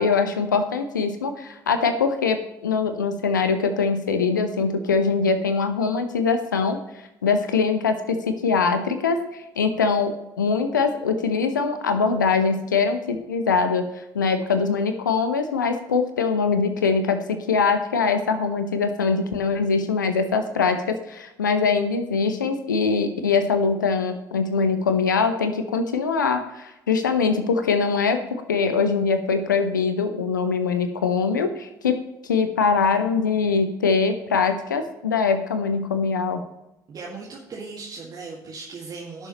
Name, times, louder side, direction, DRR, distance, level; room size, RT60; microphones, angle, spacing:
voice 1, 0.0-6.8 7.2-13.8 14.1-28.2 28.5-32.0 32.2-36.4, left 5 dB, 80° left, 9 dB, 0.8 m, -22 dB
voice 2, 36.9-39.3, right 4 dB, 40° right, -4 dB, 1.9 m, -37 dB
16.5 x 6.6 x 3.1 m, 0.93 s
figure-of-eight pair, 50°, 10 cm